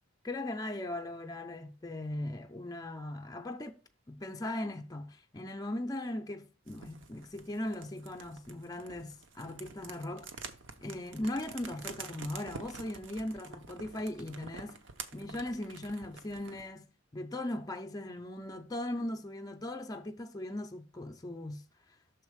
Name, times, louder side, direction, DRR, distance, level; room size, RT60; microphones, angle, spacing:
voice 1, 0.2-3.8 4.1-10.3 10.8-14.8 15.1-21.6, left 1 dB, 20° left, 0.5 m, -39 dB
sound 1, 6.7-16.7, right 5 dB, 65° right, 0.7 m, -48 dB
6.2 x 3.9 x 4.9 m
head